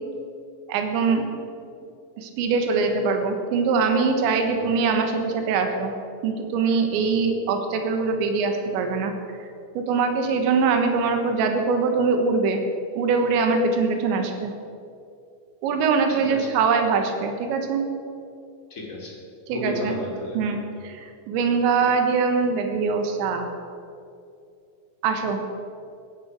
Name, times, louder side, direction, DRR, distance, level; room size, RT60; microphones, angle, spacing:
voice 1, 0.7-1.2 2.2-5.9 6.2-9.1 9.8-12.6 13.0-14.5 15.6-17.8 19.5-20.0 20.4-23.5 25.0-25.4, right 4 dB, 75° right, 5 dB, 3.6 m, -23 dB
voice 2, 18.7-19.1 19.5-20.4, left 1 dB, 30° left, -2 dB, 1.6 m, -34 dB
16.0 x 11.0 x 6.4 m, 2.5 s
omnidirectional pair, 5.4 m